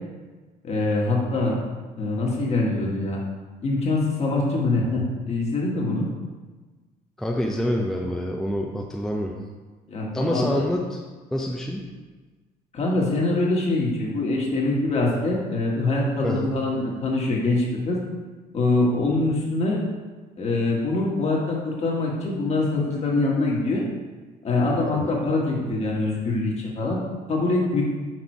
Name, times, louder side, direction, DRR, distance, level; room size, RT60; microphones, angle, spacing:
voice 1, 0.6-1.6 2.0-3.2 3.6-6.1 9.9-10.7 12.7-18.0 18.5-19.8 20.4-23.8 24.4-27.0 27.3-27.8, left 2 dB, 40° left, -2 dB, 1.5 m, -24 dB
voice 2, 7.2-9.3 10.1-11.0 11.3-11.8 16.2-16.5 24.9-25.1, equal, ahead, -1 dB, 0.5 m, -26 dB
6.1 x 3.8 x 4.6 m, 1.3 s
cardioid pair, 110°, 17 cm